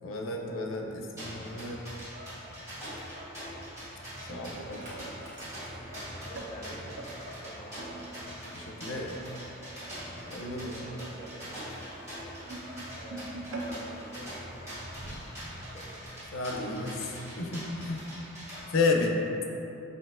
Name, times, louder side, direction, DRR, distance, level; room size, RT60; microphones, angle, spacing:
voice 1, 0.0-1.8 4.3-4.8 8.5-9.2 10.3-10.9 16.3-18.1 18.7-19.2, left 3 dB, 90° left, 1 dB, 0.4 m, -32 dB
sound 1, 1.2-18.6, equal, 15° right, 1.4 m, -43 dB
Dog, 1.4-19.1, equal, 55° right, 0.8 m, -51 dB
sound 2, 3.8-7.1 7.7-15.1 15.4-15.6 15.9-16.2 16.9-17.0, right 2 dB, 85° right, 0.5 m, -45 dB
voice 2, 5.7-6.9 7.2-8.2 10.7-11.7 13.0-15.0 15.4-16.0, equal, 20° left, -4 dB, 0.6 m, -48 dB
5.4 x 2.7 x 2.4 m, 2.9 s
head